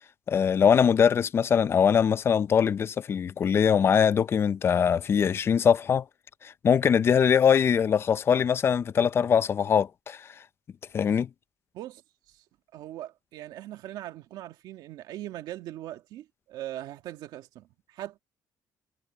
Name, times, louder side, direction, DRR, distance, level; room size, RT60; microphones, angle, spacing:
voice 1, 0.3-6.0 6.4-10.3 10.9-11.3, left 7 dB, 35° left, 0.6 m, -22 dB
voice 2, 12.7-18.2, right 13 dB, 75° right, 1.9 m, -40 dB
cardioid pair, 150°, 7 cm